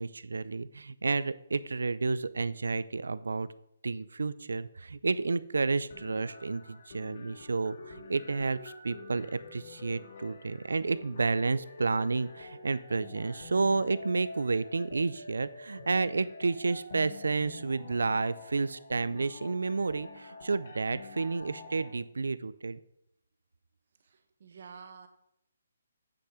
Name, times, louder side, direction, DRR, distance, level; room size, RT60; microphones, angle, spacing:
voice 1, 0.0-3.5 3.8-22.8, right 4 dB, 85° right, 16 dB, 0.5 m, -31 dB
sound 1, 5.9-21.9, left 3 dB, 55° left, 1.6 m, -48 dB
voice 2, 24.0-25.1, right 6 dB, 55° right, 7 dB, 1.3 m, -49 dB
8.6 x 6.4 x 4.9 m, 0.77 s
hypercardioid pair, 160°, 0 cm